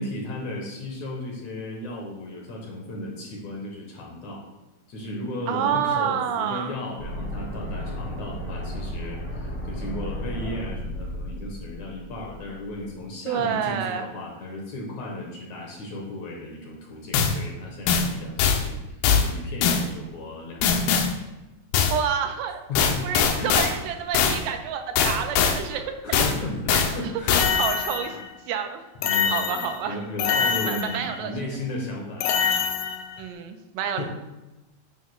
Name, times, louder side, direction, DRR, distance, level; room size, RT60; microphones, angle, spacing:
voice 1, 0.0-4.4 4.9-20.9 22.7-23.1 23.4-23.6 23.9-24.0 25.7-28.2 29.0-32.6 34.0-34.1, left 1 dB, 60° left, 0 dB, 2.1 m, -35 dB
voice 2, 5.5-6.7 13.3-14.1 21.9-22.6 23.0-25.8 26.7-26.8 27.5-28.2 28.5-28.8 29.3-30.0 30.6-31.3 33.2-34.0, right 8 dB, 85° right, 6 dB, 2.5 m, -28 dB
sound 1, 7.0-13.0, equal, 10° left, 2.1 m, -34 dB
sound 2, 17.1-17.4 17.9-18.1 18.4-18.6 19.0-19.3 19.6-19.9 20.6-21.1 21.7-22.0 22.8-23.7 24.1-24.4 25.0-25.6 26.1-26.4 26.7-26.9 27.3-28.2 29.0-29.8 30.2-31.2 32.2-33.2, left 7 dB, 85° left, 2.7 m, -22 dB
9.5 x 9.4 x 2.3 m, 1.0 s
omnidirectional pair, 4.4 m